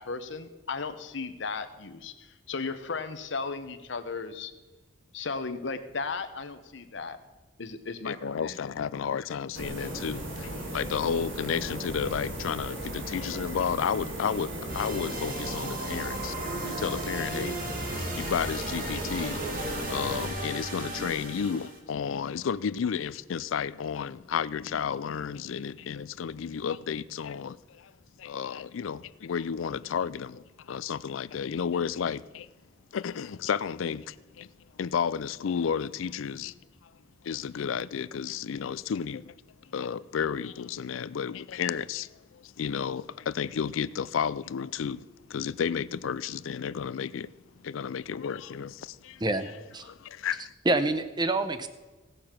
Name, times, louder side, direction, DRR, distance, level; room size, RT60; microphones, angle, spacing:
voice 1, 0.0-4.5 5.1-7.2 7.6-8.6, left 4 dB, 65° left, 0.9 m, -35 dB
voice 2, 8.0-16.4 16.7-17.6 18.1-19.4 19.9-27.9 28.2-32.5 32.9-36.6 36.8-36.9 37.2-39.3 39.6-47.3 47.6-49.2 49.8-50.5, left 7 dB, 90° left, 0.4 m, -32 dB
sound 1, 9.5-20.3, right 1 dB, 80° right, 2.6 m, -37 dB
sound 2, 14.7-21.8, right 1 dB, 50° right, 1.9 m, -35 dB
voice 3, 49.2-49.9 50.6-51.7, right 2 dB, 25° right, 0.7 m, -27 dB
17.5 x 6.8 x 5.9 m
head